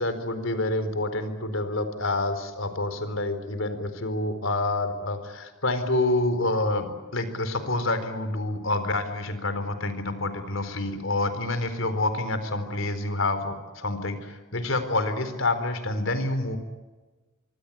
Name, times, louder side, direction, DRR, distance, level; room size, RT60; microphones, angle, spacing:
voice 1, 0.0-16.6, left 2 dB, 70° left, 10 dB, 4.2 m, -28 dB
25.5 x 24.0 x 8.6 m, 1.2 s
head